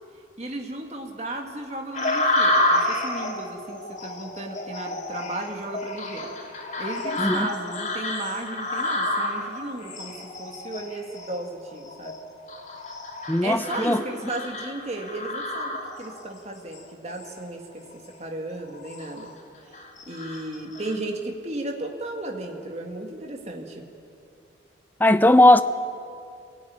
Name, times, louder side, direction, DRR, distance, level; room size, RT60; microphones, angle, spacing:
voice 1, 0.4-6.3 6.8-12.2 13.4-19.3 20.1-23.9, right 2 dB, 35° right, 2.2 m, -34 dB
sound 1, 1.9-16.3 16.7-17.4 17.9-18.1 18.6-19.3 19.7-21.0, left 1 dB, 40° left, 2.6 m, -29 dB
voice 2, 13.3-14.0 25.0-25.6, left 1 dB, 10° left, 0.6 m, -17 dB
23.0 x 17.0 x 9.6 m
head